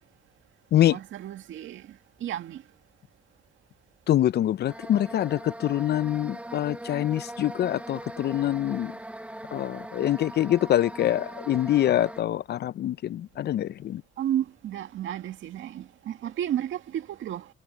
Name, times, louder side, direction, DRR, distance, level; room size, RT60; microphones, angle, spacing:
voice 1, 0.9-1.8 2.2-2.6 14.2-17.5, right 11 dB, 75° right, 2.0 m, -32 dB
voice 2, 4.1-8.9 9.5-14.0, left 12 dB, 55° left, 0.5 m, -25 dB
sound 1, 4.7-12.2, right 1 dB, 5° right, 0.9 m, -40 dB
cardioid pair, 90°, 20 cm